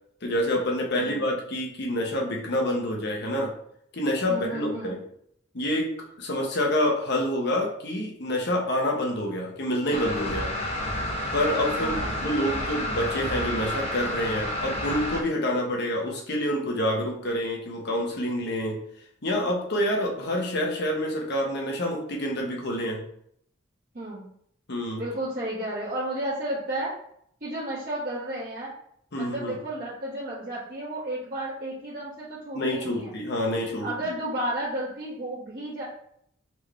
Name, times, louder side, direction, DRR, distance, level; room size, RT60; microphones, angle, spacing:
voice 1, 0.2-3.5 3.9-5.0 5.5-5.9 6.2-10.5 11.3-18.8 19.2-23.0 24.7-25.0 29.1-29.5 32.5-33.9, left 1 dB, 60° left, 0 dB, 1.0 m, -27 dB
voice 2, 4.3-5.0 11.8-12.9 23.9-24.2 25.0-26.9 27.4-28.7 29.2-33.2 33.8-35.8, right 1 dB, 50° right, -11 dB, 1.7 m, -33 dB
sound 1, 9.9-15.2, left 1 dB, 30° left, 1.1 m, -30 dB
4.4 x 3.5 x 3.2 m, 0.70 s
head